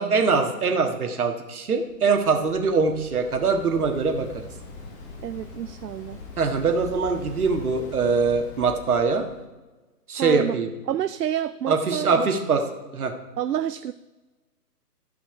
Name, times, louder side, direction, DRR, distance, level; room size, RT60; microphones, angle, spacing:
voice 1, 0.0-4.3 6.4-9.3 10.1-10.7 11.7-12.6 12.9-13.1, right 4 dB, 60° right, 4 dB, 1.6 m, -23 dB
Waves surf, 1.8-9.4, left 3 dB, 20° left, 1.3 m, -42 dB
voice 2, 5.2-6.2 10.2-10.6 10.9-12.3 13.4-13.9, right 10 dB, 80° right, 13 dB, 0.5 m, -29 dB
14.0 x 5.8 x 4.8 m, 1.2 s
figure-of-eight pair, 140°, 48 cm